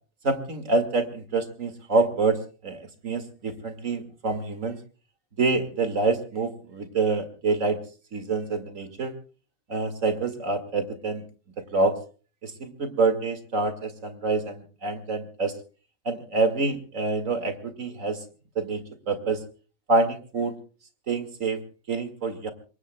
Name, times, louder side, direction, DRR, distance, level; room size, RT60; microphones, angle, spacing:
voice 1, 0.2-4.8 5.4-7.8 8.1-9.1 9.7-11.2 11.7-12.0 12.4-15.5 16.0-18.2 18.6-19.4 19.9-20.5 21.1-21.6 21.9-22.5, right 3 dB, 65° right, 9 dB, 2.4 m, -26 dB
27.5 x 22.5 x 2.2 m, 0.38 s
omnidirectional pair, 1.5 m